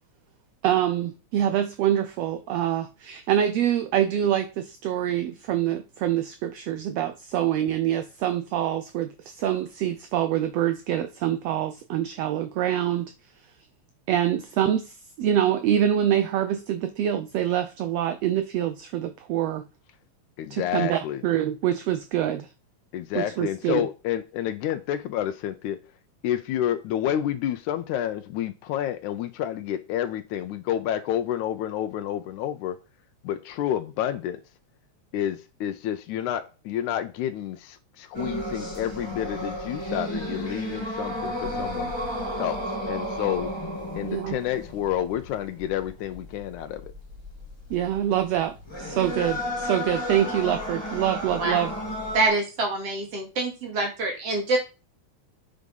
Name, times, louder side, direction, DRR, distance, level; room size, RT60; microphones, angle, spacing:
voice 1, 0.6-13.1 14.1-19.6 20.5-22.5 23.1-23.9 44.0-44.4 47.7-51.7, right 11 dB, 75° right, 1.7 m, -25 dB
voice 2, 20.4-21.2 22.9-25.8 26.2-32.8 33.2-34.4 35.1-41.9 42.4-43.5 43.9-46.8, left 11 dB, 90° left, 2.2 m, -29 dB
sound 1, 38.1-52.3, equal, 10° left, 2.1 m, -33 dB
voice 3, 51.4-51.8 52.1-54.6, right 2 dB, 55° right, 3.4 m, -26 dB
8.0 x 4.8 x 5.4 m
omnidirectional pair, 3.3 m